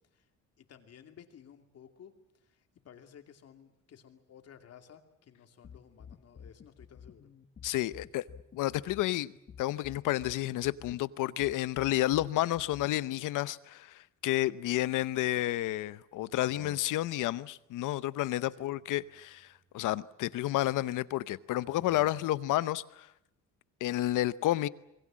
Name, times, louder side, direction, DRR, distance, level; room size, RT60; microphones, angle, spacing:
voice 1, 0.6-2.1 2.4-7.3 18.5-18.7, left 8 dB, 55° left, 2.6 m, -55 dB
sound 1, 5.6-13.2, left 7 dB, 35° left, 1.2 m, -51 dB
voice 2, 7.6-8.2 8.5-9.3 9.6-19.5 19.7-23.1 23.8-24.7, left 15 dB, 85° left, 0.9 m, -31 dB
sound 2, 16.3-17.3 18.6-20.3 21.6-22.6, right 3 dB, 90° right, 4.9 m, -58 dB
27.0 x 22.0 x 7.5 m
cardioid pair, 140°, 31 cm